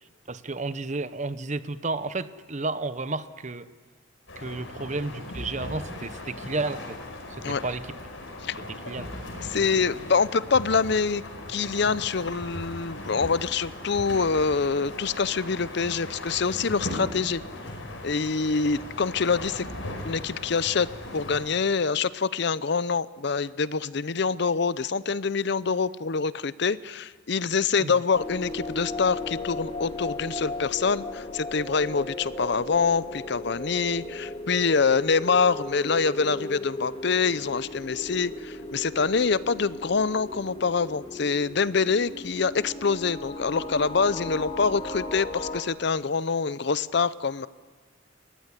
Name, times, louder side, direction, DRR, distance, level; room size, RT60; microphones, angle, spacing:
voice 1, 0.3-3.7 4.4-7.0 7.3-7.8 8.7-9.1 27.8-28.0, right 3 dB, 40° right, 13 dB, 0.9 m, -32 dB
sound 1, 4.3-21.4, left 1 dB, 85° left, 5.3 m, -38 dB
voice 2, 9.4-11.2 11.5-17.4 18.0-19.7 20.0-20.9 21.1-47.5, left 5 dB, 60° left, 17 dB, 0.6 m, -25 dB
sound 2, 28.1-45.6, left 2 dB, 30° left, 1.9 m, -36 dB
29.5 x 15.5 x 9.9 m, 1.4 s
head